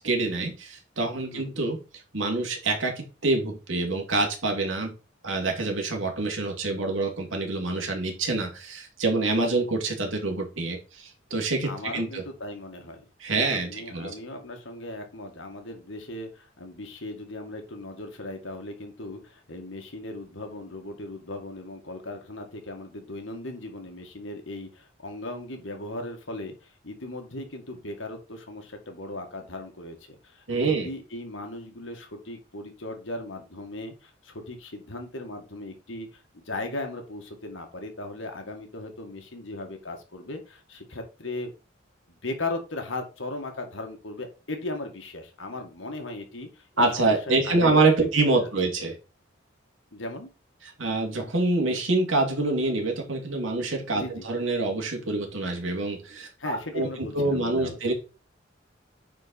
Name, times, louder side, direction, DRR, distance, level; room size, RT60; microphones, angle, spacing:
voice 1, 0.0-1.8 2.1-4.9 5.2-12.2 13.2-14.1 30.5-30.9 46.8-48.9 50.8-56.9 57.1-57.9, right 3 dB, 75° right, 1 dB, 2.7 m, -26 dB
voice 2, 11.6-13.1 13.5-41.5 42.1-48.1 48.4-48.5 49.9-50.3 53.9-54.3 56.4-57.9, left 2 dB, 75° left, 4 dB, 2.0 m, -37 dB
9.4 x 4.6 x 4.2 m, 0.32 s
head